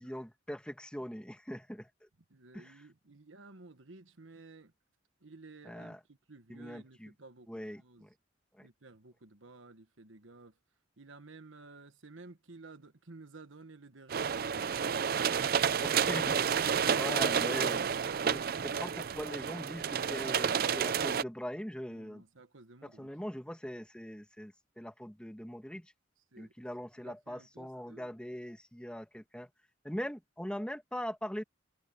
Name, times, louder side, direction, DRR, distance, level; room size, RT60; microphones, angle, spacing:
voice 1, 0.0-1.9 2.5-2.8 5.6-6.0 6.5-7.1 7.5-8.1 8.6-8.7 15.8-16.4 16.9-17.8 18.2-22.2 22.8-25.9 26.4-29.5 29.8-31.4, equal, 5° left, 1.6 m, -41 dB
voice 2, 2.3-4.7 5.2-8.1 8.6-10.5 11.0-15.0 21.9-23.1 26.3-26.5 27.0-28.1, right 3 dB, 85° right, 1.5 m, -54 dB
sound 1, 14.1-21.2, right 7 dB, 50° right, 0.4 m, -30 dB
head